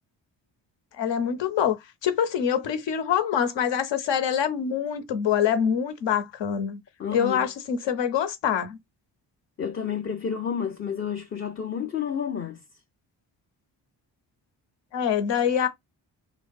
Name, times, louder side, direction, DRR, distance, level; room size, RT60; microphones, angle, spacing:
voice 1, 0.9-6.8 7.1-8.8 14.9-15.7, left 8 dB, 65° left, 0.7 m, -25 dB
voice 2, 7.0-7.5 9.6-12.6, left 7 dB, 30° left, 0.5 m, -30 dB
2.6 x 2.3 x 2.2 m
supercardioid pair, 45°, 48 cm